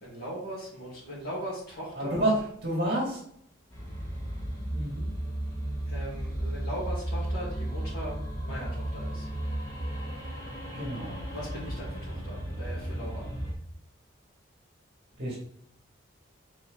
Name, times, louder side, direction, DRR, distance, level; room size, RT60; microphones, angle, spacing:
voice 1, 0.0-2.2 5.9-9.3 11.3-13.2, right 1 dB, 50° left, -9 dB, 2.3 m, -39 dB
voice 2, 1.9-3.2 4.7-5.1 10.7-11.2 15.2-15.4, right 1 dB, 55° right, -4 dB, 2.7 m, -29 dB
sound 1, 3.7-13.5, right 1 dB, 20° left, 2.4 m, -34 dB
5.2 x 4.9 x 4.2 m, 0.66 s
head